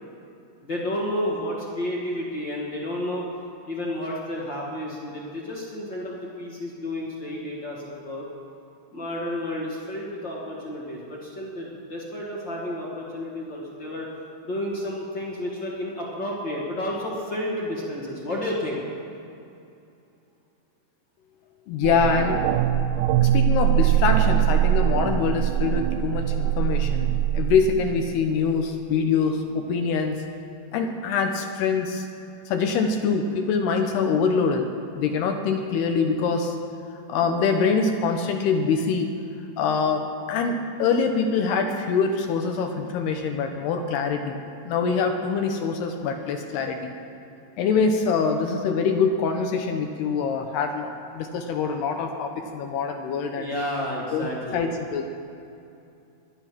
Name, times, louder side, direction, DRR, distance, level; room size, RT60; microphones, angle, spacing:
voice 1, 0.6-3.3 3.6-8.2 8.9-14.1 14.4-18.8 53.4-54.6, left 1 dB, 45° left, -4 dB, 1.5 m, -31 dB
voice 2, 21.7-22.4 23.2-30.2 30.7-32.1 32.5-34.7 35.0-36.6 37.1-39.1 39.6-44.4 44.6-46.9 47.6-53.5 54.1-55.1, left 5 dB, 75° left, 4 dB, 2.6 m, -24 dB
sound 1, 21.8-27.6, right 11 dB, 85° right, 2.9 m, -22 dB
22.0 x 10.5 x 6.0 m, 2.7 s
omnidirectional pair, 5.4 m